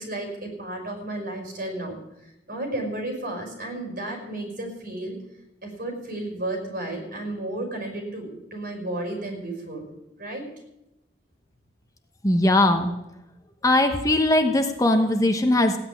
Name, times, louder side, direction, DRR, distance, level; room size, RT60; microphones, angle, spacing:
voice 1, 0.0-5.2 5.6-9.9 10.2-10.5, right 1 dB, 50° right, 2 dB, 5.3 m, -33 dB
voice 2, 12.2-12.9 13.6-15.8, left 1 dB, 20° left, 6 dB, 1.0 m, -20 dB
16.0 x 8.7 x 9.9 m, 0.92 s
head